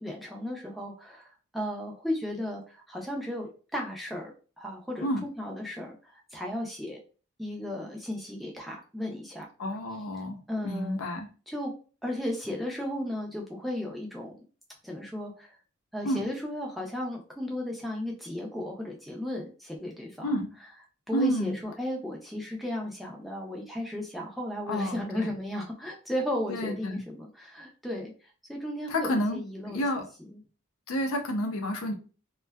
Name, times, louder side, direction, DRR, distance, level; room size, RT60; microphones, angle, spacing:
voice 1, 0.0-4.3 4.6-7.0 7.4-9.5 10.5-11.0 11.5-11.7 12.0-14.3 14.8-15.6 15.9-20.3 21.1-29.8 30.3-30.4, left 1 dB, ahead, -1 dB, 0.4 m, -35 dB
voice 2, 9.6-10.4 10.6-11.3 16.0-16.3 20.2-20.5 21.1-21.6 24.7-25.3 26.5-27.0 28.9-29.4 29.7-30.0 30.9-31.9, equal, 80° left, 5 dB, 0.5 m, -30 dB
2.5 x 2.2 x 2.2 m, 0.36 s
head